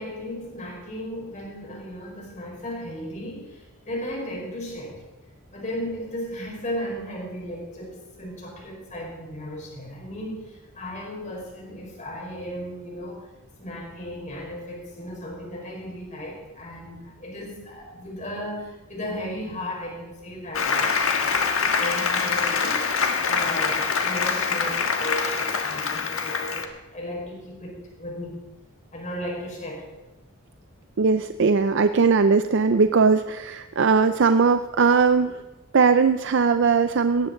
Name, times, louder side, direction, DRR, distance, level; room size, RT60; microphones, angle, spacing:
voice 1, 0.0-5.0 5.5-13.3 13.6-21.5 21.8-22.9 23.2-28.4 28.9-29.9, equal, 35° left, -2 dB, 5.0 m, -35 dB
Applause, 20.5-26.7, left 5 dB, 80° left, 1.5 m, -24 dB
voice 2, 31.0-35.4 35.7-37.3, right 5 dB, 60° right, 10 dB, 0.5 m, -19 dB
18.0 x 14.5 x 3.9 m, 1.1 s
head